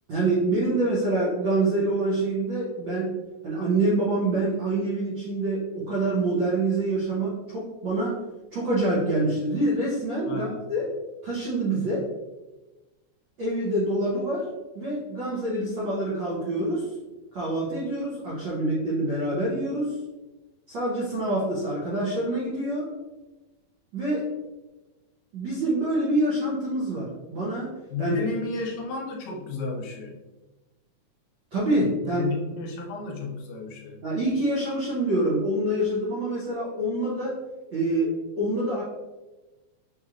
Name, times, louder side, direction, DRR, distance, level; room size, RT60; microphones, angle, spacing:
voice 1, 0.1-3.1 3.4-8.2 8.5-10.9 11.2-12.1 13.4-14.4 14.7-16.8 17.3-20.0 20.7-22.9 23.9-24.3 25.3-27.7 28.0-28.3 31.5-32.3 34.0-37.4 37.7-38.8, right 2 dB, 70° right, -7 dB, 1.1 m, -26 dB
voice 2, 10.3-10.6 27.9-30.2 32.0-34.0, left 3 dB, 75° left, -1 dB, 1.8 m, -33 dB
6.1 x 3.1 x 2.5 m, 1.1 s
omnidirectional pair, 3.3 m